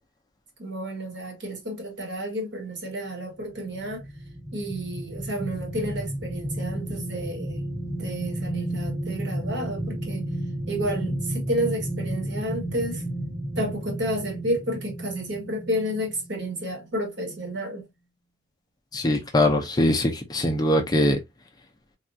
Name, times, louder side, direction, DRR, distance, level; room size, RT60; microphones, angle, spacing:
voice 1, 0.6-4.1 4.5-7.7 8.0-10.3 10.7-13.0 13.5-17.9, equal, 65° right, 1.3 m, -31 dB
sound 1, 3.5-16.5 16.9-17.1, right 1 dB, 10° right, 1.3 m, -32 dB
voice 2, 18.9-21.2, left 1 dB, 20° left, 0.5 m, -22 dB
3.4 x 2.3 x 2.6 m
head